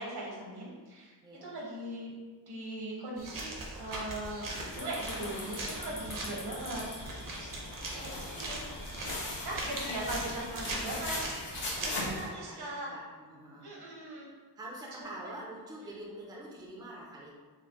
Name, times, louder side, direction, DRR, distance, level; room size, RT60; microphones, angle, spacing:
voice 1, 0.0-1.1 1.4-2.1 2.5-3.5 3.8-4.4 4.7-7.5 7.9-8.7 9.4-11.2 11.6-12.9 13.6-14.3, right 1 dB, 70° right, -3 dB, 1.0 m, -39 dB
sound 1, 3.2-12.1, right 2 dB, 50° right, 0.7 m, -41 dB
sound 2, 4.5-12.3, left 2 dB, 80° left, 1.2 m, -41 dB
sound 3, 4.7-10.5, left 1 dB, 50° left, 0.9 m, -47 dB
voice 2, 5.8-6.3 11.7-13.7 14.6-17.3, right 1 dB, 10° right, -3 dB, 0.4 m, -46 dB
5.0 x 2.1 x 2.8 m, 1.4 s
wide cardioid pair, 155°, 41 cm